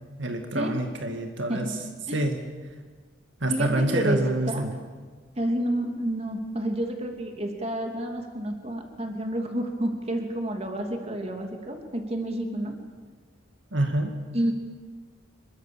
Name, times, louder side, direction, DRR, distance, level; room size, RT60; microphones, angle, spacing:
voice 1, 0.2-1.7 2.1-2.4 3.4-4.7 13.7-14.1, right 1 dB, 65° right, 4 dB, 2.1 m, -26 dB
voice 2, 3.5-4.2 4.5-4.6 5.4-12.7 14.3-14.5, right 1 dB, 30° right, 3 dB, 3.1 m, -29 dB
26.5 x 22.5 x 7.4 m, 1.5 s
head